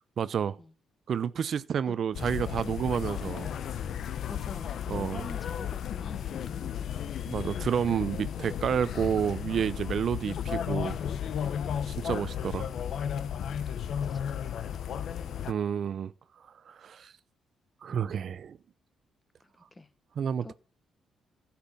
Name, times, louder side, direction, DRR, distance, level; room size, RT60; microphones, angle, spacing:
voice 1, 0.2-0.6 1.1-3.5 4.9-5.2 7.3-11.0 11.9-12.7 15.5-16.1 16.7-17.1 17.8-18.6 20.2-20.5, right 8 dB, 55° right, 0.6 m, -30 dB
sound 1, 2.1-15.5, left 9 dB, 65° left, 1.0 m, -34 dB
voice 2, 4.3-7.2 13.6-14.8 17.9-18.4 19.4-19.9 20.4-20.5, left 2 dB, 20° left, 1.4 m, -48 dB
11.5 x 7.2 x 7.2 m
cardioid pair, 90°, 0 cm